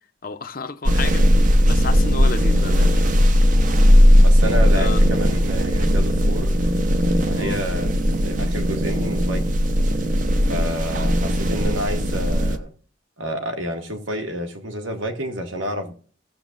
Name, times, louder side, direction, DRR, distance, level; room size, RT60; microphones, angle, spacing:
voice 1, 0.2-1.2 1.7-3.1 4.7-5.0 7.3-7.6, left 4 dB, 45° left, 0.7 m, -31 dB
sound 1, 0.8-12.6, equal, 40° right, 0.7 m, -17 dB
voice 2, 4.2-6.6 7.3-7.9 8.2-9.4 10.5-12.7 13.2-15.9, equal, 80° right, 1.8 m, -29 dB
15.5 x 7.2 x 2.5 m
head